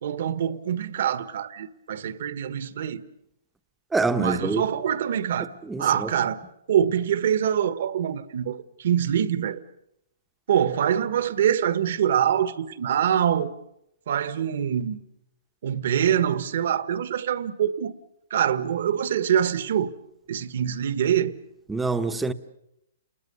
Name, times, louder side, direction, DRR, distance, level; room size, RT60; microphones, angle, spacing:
voice 1, 0.0-3.0 4.2-5.5 5.8-6.4 6.7-9.6 10.5-13.5 14.1-15.0 15.6-17.9 18.3-19.9 20.3-21.3, right 9 dB, 65° right, 1.4 m, -24 dB
voice 2, 3.9-4.6 5.7-6.1 21.7-22.3, right 3 dB, 5° right, 0.9 m, -25 dB
29.5 x 21.0 x 6.9 m
hypercardioid pair, 155°, 0 cm